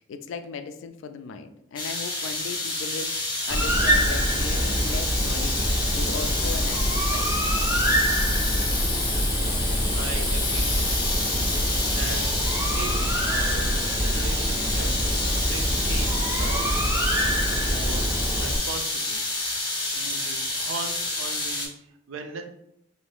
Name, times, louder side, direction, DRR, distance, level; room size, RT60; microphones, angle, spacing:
voice 1, 0.0-7.5, left 5 dB, 70° left, 8 dB, 0.3 m, -37 dB
sound 1, 1.8-21.7, left 2 dB, 20° left, 0.7 m, -29 dB
Bird, 3.5-18.6, equal, 15° right, 0.4 m, -25 dB
voice 2, 9.7-19.2 19.5-22.4, right 4 dB, 80° right, 5 dB, 0.4 m, -39 dB
2.6 x 2.5 x 3.4 m, 0.76 s
head